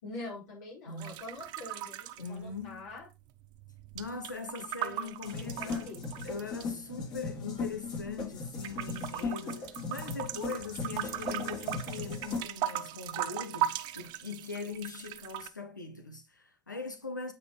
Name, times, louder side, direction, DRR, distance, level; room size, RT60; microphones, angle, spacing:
voice 1, 0.0-3.1 4.8-5.1 5.4-6.3, left 2 dB, 65° left, 4.3 m, -45 dB
sound 1, 1.0-3.0 3.3-6.6 7.3-8.3 8.6-15.5, right 12 dB, 50° right, 0.6 m, -38 dB
voice 2, 2.2-2.8 3.9-5.9 6.2-17.3, left 4 dB, 85° left, 0.8 m, -41 dB
sound 2, 5.2-12.4, left 4 dB, 45° left, 3.5 m, -38 dB
7.9 x 5.4 x 3.3 m
figure-of-eight pair, 65°, 10 cm